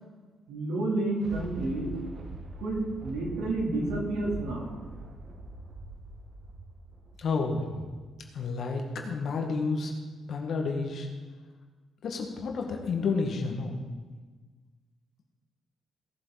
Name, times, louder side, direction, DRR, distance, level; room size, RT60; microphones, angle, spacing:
voice 1, 0.5-1.9 2.6-4.7, right 2 dB, 85° right, -2 dB, 3.2 m, -30 dB
Thunder, 0.8-8.3 8.8-8.9, right 2 dB, 50° right, 1.4 m, -43 dB
voice 2, 7.2-7.6 8.3-9.9 10.3-11.1 12.0-13.8, left 4 dB, 60° left, 1 dB, 1.8 m, -30 dB
17.5 x 7.8 x 4.1 m, 1.4 s
cardioid pair, 90°, 0 cm